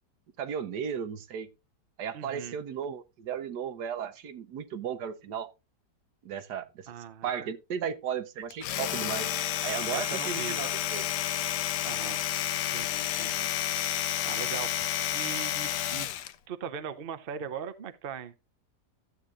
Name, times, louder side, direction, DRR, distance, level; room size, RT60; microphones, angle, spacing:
voice 1, 0.4-1.5 2.0-5.5 6.2-6.9 7.2-9.3 9.6-11.0, right 8 dB, 75° right, 1.4 m, -35 dB
voice 2, 2.1-2.6 6.9-7.3 9.9-10.6 11.8-12.2 12.7-13.5 14.2-16.1 16.5-18.3, right 7 dB, 45° right, 0.7 m, -39 dB
Domestic sounds home sounds, 8.5-16.4, left 12 dB, 75° left, 1.3 m, -30 dB
13.0 x 8.2 x 2.5 m
omnidirectional pair, 1.8 m